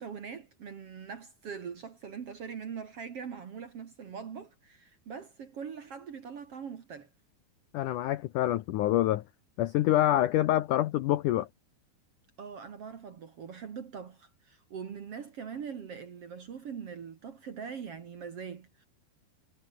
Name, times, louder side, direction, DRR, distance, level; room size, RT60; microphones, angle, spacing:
voice 1, 0.0-7.1 10.1-10.3 12.4-18.8, right 6 dB, 50° right, 2.0 m, -42 dB
voice 2, 7.7-9.2 9.6-11.5, left 14 dB, 75° left, 1.9 m, -26 dB
omnidirectional pair, 4.7 m